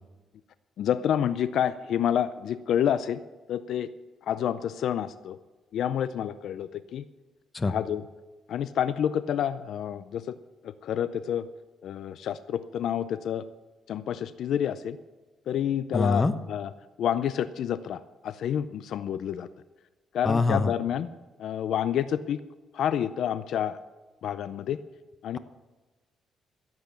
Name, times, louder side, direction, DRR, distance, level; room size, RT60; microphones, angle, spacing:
voice 1, 0.8-3.2 3.5-3.9 4.2-5.4 5.7-7.0 7.6-8.0 8.5-10.2 10.6-11.5 11.8-13.4 13.9-15.0 15.5-16.2 16.5-16.7 17.0-19.5 20.1-21.1 21.4-22.4 22.7-23.8 24.2-24.8 25.2-25.4, left 9 dB, 70° left, 14 dB, 0.5 m, -28 dB
voice 2, 15.9-16.3 20.2-20.7, left 3 dB, 25° left, 12 dB, 0.9 m, -24 dB
15.5 x 8.2 x 7.1 m, 1.2 s
cardioid pair, 90°, 0 cm